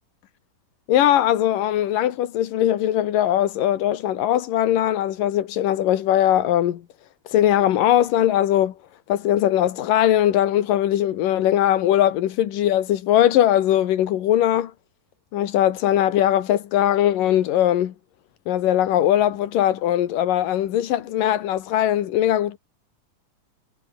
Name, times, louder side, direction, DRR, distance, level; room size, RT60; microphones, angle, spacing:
voice 1, 0.9-6.8 7.3-8.7 9.1-14.7 15.3-17.9 18.5-22.6, left 12 dB, 90° left, 3.2 m, -20 dB
omnidirectional pair, 3.7 m